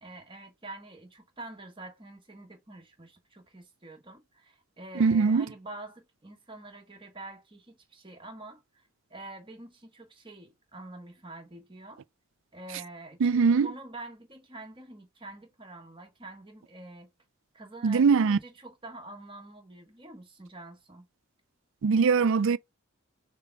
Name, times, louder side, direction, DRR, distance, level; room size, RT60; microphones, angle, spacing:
voice 1, 0.0-12.0 12.5-17.1 17.5-21.1, right 2 dB, 25° right, 1.4 m, -46 dB
voice 2, 5.0-5.5 13.2-13.7 17.8-18.4 21.8-22.6, right 5 dB, 60° right, 0.4 m, -22 dB
6.7 x 2.3 x 3.4 m
head